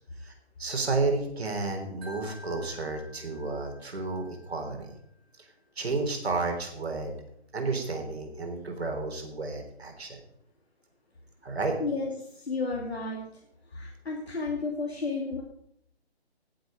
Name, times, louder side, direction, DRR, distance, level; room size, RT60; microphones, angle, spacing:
voice 1, 0.6-4.9 5.4-5.5 5.8-7.1 7.5-10.2 11.4-11.8, right 3 dB, 70° right, 4 dB, 3.7 m, -31 dB
Wind chime, 2.0-5.1, left 1 dB, 20° right, 2.1 m, -52 dB
voice 2, 11.8-13.2 13.7-15.4, left 3 dB, 70° left, -1 dB, 2.6 m, -32 dB
17.0 x 7.8 x 5.1 m, 0.71 s
figure-of-eight pair, 160°, 32 cm